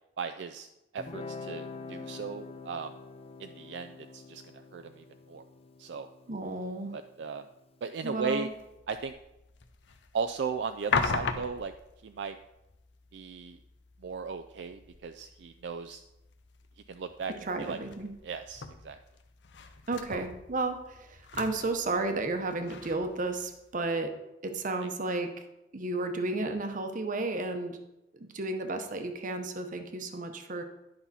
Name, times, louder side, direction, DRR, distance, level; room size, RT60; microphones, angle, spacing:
voice 1, 0.2-0.7 0.9-2.9 3.4-5.4 5.8-6.1 6.9-7.5 7.8-8.5 8.9-9.1 10.1-11.7 12.0-12.4 13.1-13.6 14.0-16.0 16.9-17.3 17.6-17.8 18.2-19.0 20.1-20.2 24.8-24.9, right 5 dB, 70° right, 9 dB, 0.4 m, -36 dB
Guitar, 1.0-8.1, left 4 dB, 35° left, 0.6 m, -46 dB
voice 2, 6.3-6.9 8.0-8.5 17.4-18.1 19.9-24.1 24.4-25.3 25.7-27.8 28.1-30.6, right 2 dB, 45° right, 6 dB, 0.9 m, -33 dB
sound 1, 8.4-23.8, left 4 dB, 75° left, 0.7 m, -40 dB
10.5 x 5.7 x 4.2 m, 0.93 s
head